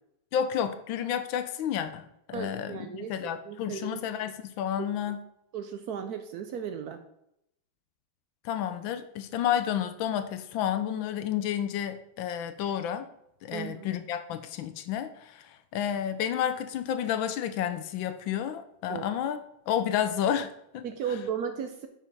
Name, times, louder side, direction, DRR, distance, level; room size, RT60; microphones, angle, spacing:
voice 1, 0.3-5.2 8.4-13.1 13.4-20.8, left 9 dB, 80° left, 10 dB, 1.3 m, -31 dB
voice 2, 2.3-3.2 3.4-4.0 5.5-7.0 13.5-13.9 18.9-19.1 20.8-21.9, right 7 dB, 75° right, 7 dB, 0.8 m, -35 dB
5.5 x 4.9 x 5.4 m, 0.78 s
omnidirectional pair, 2.2 m